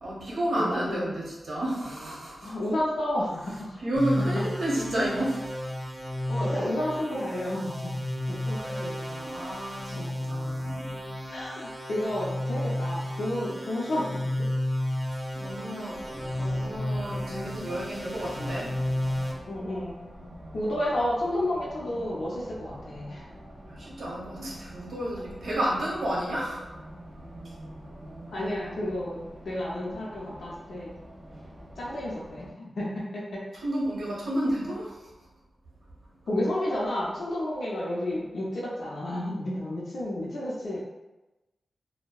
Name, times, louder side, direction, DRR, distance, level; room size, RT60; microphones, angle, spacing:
voice 1, 0.0-2.5 3.8-5.7 8.7-11.0 15.3-18.8 23.7-26.8 33.6-35.1, right 1 dB, 80° right, -5 dB, 0.7 m, -31 dB
voice 2, 0.6-1.2 2.4-3.8 6.3-7.9 8.3-8.6 9.9-10.1 11.3-14.5 17.3-17.5 19.5-20.0 20.5-23.2 28.3-31.0 31.8-33.4 36.3-40.8, left 1 dB, 70° left, -6 dB, 0.5 m, -31 dB
sound 1, 4.0-19.3, left 1 dB, ahead, 0.4 m, -32 dB
Race car auto racing, 15.9-32.5, equal, 55° right, 1.2 m, -46 dB
2.6 x 2.0 x 2.2 m, 1.0 s
wide cardioid pair, 155°, 0 cm